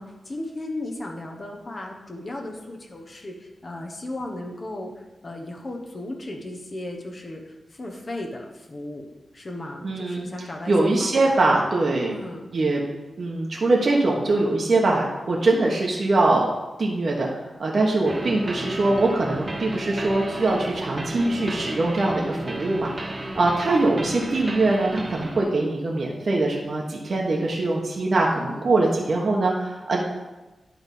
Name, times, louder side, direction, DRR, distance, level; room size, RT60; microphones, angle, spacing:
voice 1, 0.0-4.9 5.2-9.1 9.3-11.3 12.1-12.5 18.0-18.1 23.2-23.6 28.3-28.6, left 1 dB, 40° left, 2 dB, 1.0 m, -36 dB
voice 2, 9.8-12.2 12.5-12.8 13.2-16.5 16.8-17.3 17.6-30.0, right 2 dB, 50° right, -2 dB, 1.1 m, -22 dB
sound 1, 18.1-25.4, right 1 dB, 25° right, 0.9 m, -34 dB
10.5 x 3.5 x 5.3 m, 1.1 s
wide cardioid pair, 115°, 0 cm